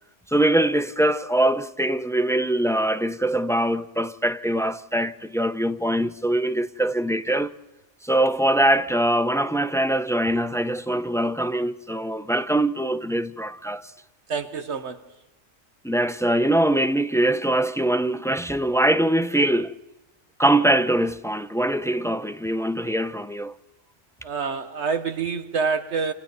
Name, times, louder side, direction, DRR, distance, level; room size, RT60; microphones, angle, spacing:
voice 1, 0.3-7.5 8.0-13.9 15.8-19.7 20.4-23.5, right 1 dB, 5° left, 0.4 m, -23 dB
voice 2, 14.3-15.0 24.2-26.1, right 5 dB, 70° right, 1.3 m, -27 dB
28.5 x 28.5 x 4.0 m
omnidirectional pair, 1.2 m